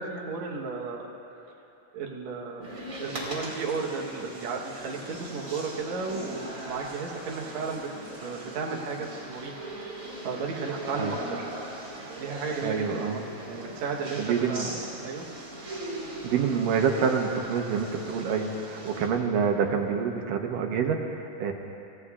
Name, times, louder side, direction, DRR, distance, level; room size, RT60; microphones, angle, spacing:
voice 1, 0.0-1.5 1.9-2.7 3.0-7.9 8.2-9.5 10.2-11.5 12.2-13.2 13.5-15.2, right 4 dB, 65° right, -1 dB, 2.2 m, -34 dB
sound 1, 2.6-19.1, right 1 dB, 30° right, 2.4 m, -40 dB
voice 2, 12.6-13.2 14.1-14.7 16.2-21.5, right 6 dB, 85° right, 2 dB, 2.6 m, -27 dB
28.0 x 15.5 x 2.5 m, 2.8 s
omnidirectional pair, 3.8 m